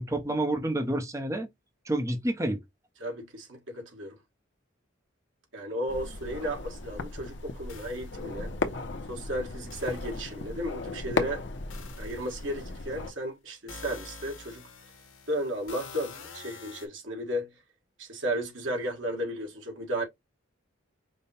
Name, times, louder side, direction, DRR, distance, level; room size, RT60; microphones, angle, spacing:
voice 1, 0.0-1.5 1.8-2.6, right 1 dB, 15° right, 0.7 m, -29 dB
voice 2, 3.0-4.1 5.5-8.5 9.1-11.4 12.0-14.7 15.3-17.5 18.0-20.0, equal, 70° right, 1.5 m, -34 dB
sound 1, 5.9-13.1, left 3 dB, 60° left, 0.8 m, -36 dB
sound 2, 7.7-8.2 9.7-10.5 11.7-13.0 13.7-16.9, left 4 dB, 80° left, 1.1 m, -47 dB
5.3 x 2.2 x 4.1 m
head